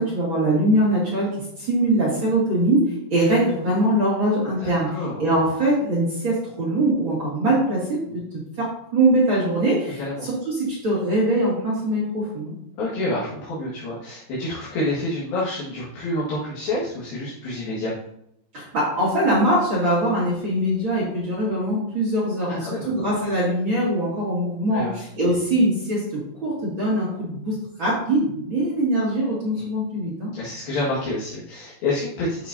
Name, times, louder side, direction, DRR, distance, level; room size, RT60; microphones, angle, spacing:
voice 1, 0.0-4.9 5.2-8.0 8.3-12.5 18.5-30.3, right 1 dB, 35° right, -7 dB, 2.4 m, -22 dB
voice 2, 4.6-5.2 8.1-8.2 10.0-10.3 12.8-17.9 22.6-22.9 24.7-25.0 29.5-29.7 30.3-32.5, left 2 dB, 65° left, -7 dB, 3.4 m, -28 dB
11.0 x 5.9 x 2.7 m, 0.75 s
omnidirectional pair, 4.7 m